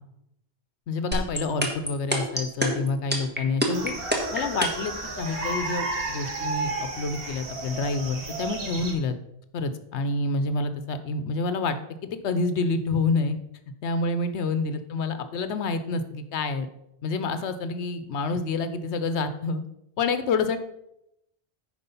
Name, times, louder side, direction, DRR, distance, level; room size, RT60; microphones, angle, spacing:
voice 1, 0.9-3.9 4.3-9.2 9.5-13.4 13.8-16.7 17.0-19.6 20.0-20.6, left 3 dB, 90° left, 10 dB, 1.0 m, -28 dB
sound 1, 1.1-4.9, equal, 10° right, 1.4 m, -25 dB
sound 2, 3.7-8.9, right 3 dB, 60° right, 1.6 m, -32 dB
9.8 x 4.8 x 5.4 m, 0.81 s
omnidirectional pair, 1.1 m